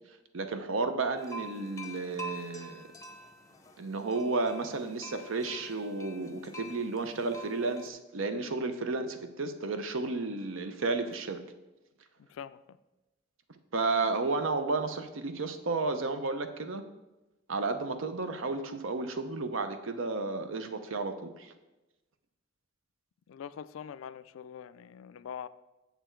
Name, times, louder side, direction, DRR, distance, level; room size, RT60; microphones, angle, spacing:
voice 1, 0.3-2.9 3.8-11.4 13.7-16.8 17.5-21.5, right 3 dB, 70° right, 0.7 m, -32 dB
sound 1, 1.2-7.9, equal, 15° left, 0.6 m, -47 dB
voice 2, 23.3-25.5, left 8 dB, 75° left, 0.3 m, -43 dB
6.9 x 6.8 x 4.5 m
head